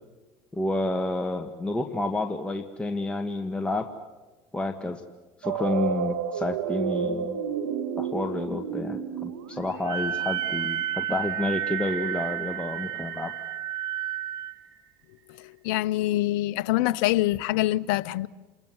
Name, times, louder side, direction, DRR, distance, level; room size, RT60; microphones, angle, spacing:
voice 1, 0.5-3.9 4.5-5.0 5.4-7.4 8.0-13.3, left 2 dB, 10° left, 1.7 m, -30 dB
sound 1, 5.4-14.4, right 8 dB, 85° right, 1.9 m, -33 dB
Wind instrument woodwind instrument, 9.8-14.5, right 11 dB, 40° right, 1.9 m, -31 dB
voice 2, 15.6-18.3, left 16 dB, 70° left, 0.8 m, -25 dB
28.5 x 21.5 x 8.1 m
supercardioid pair, 90°, 11 cm